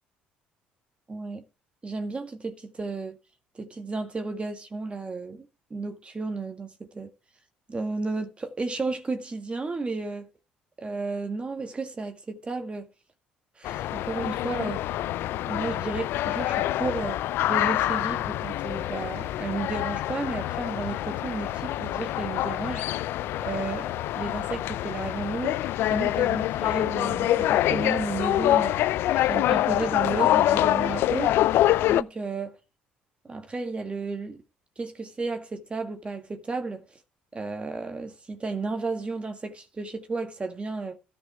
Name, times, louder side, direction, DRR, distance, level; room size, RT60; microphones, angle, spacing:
voice 1, 1.1-1.4 1.8-3.2 3.6-7.1 7.7-10.3 10.8-12.9 13.6-14.8 15.5-22.9 23.4-23.9 24.2-25.6 25.9-31.3 31.8-32.6 33.2-34.4 34.8-36.8 37.3-41.0, right 3 dB, 25° right, 1.8 m, -33 dB
sound 1, 13.6-32.0, left 14 dB, 60° left, 0.4 m, -26 dB
14.0 x 5.4 x 4.6 m
hypercardioid pair, 55°, 4 cm